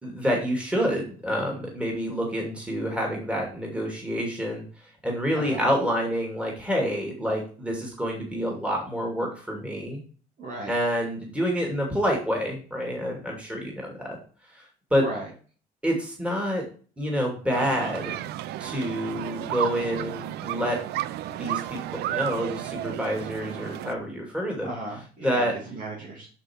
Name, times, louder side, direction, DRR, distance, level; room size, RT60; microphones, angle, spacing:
voice 1, 0.0-4.6 5.0-10.0 10.7-14.2 14.9-15.0 15.8-16.6 17.0-18.1 18.6-20.8 21.3-24.7 25.2-25.5, equal, 5° right, -1 dB, 2.7 m, -28 dB
voice 2, 5.3-5.6 10.4-10.7 15.0-15.3 24.6-26.3, right 2 dB, 50° right, -2 dB, 2.5 m, -36 dB
sound 1, 17.5-23.9, right 13 dB, 75° right, 0.5 m, -33 dB
6.7 x 6.1 x 4.6 m, 0.40 s
cardioid pair, 110°, 17 cm